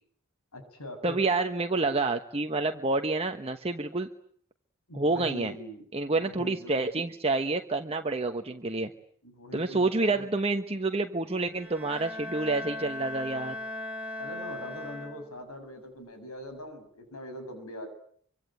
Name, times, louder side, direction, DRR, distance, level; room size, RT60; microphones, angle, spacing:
voice 1, 0.5-1.2 4.9-6.9 9.2-10.3 14.2-17.9, left 1 dB, 85° left, 8 dB, 7.5 m, -42 dB
voice 2, 1.0-4.1 4.9-5.5 5.9-8.9 9.5-13.6, right 3 dB, 25° right, 6 dB, 1.2 m, -28 dB
Bowed string instrument, 11.5-15.6, left 2 dB, 5° right, 4.4 m, -38 dB
25.0 x 25.0 x 9.1 m, 0.63 s
head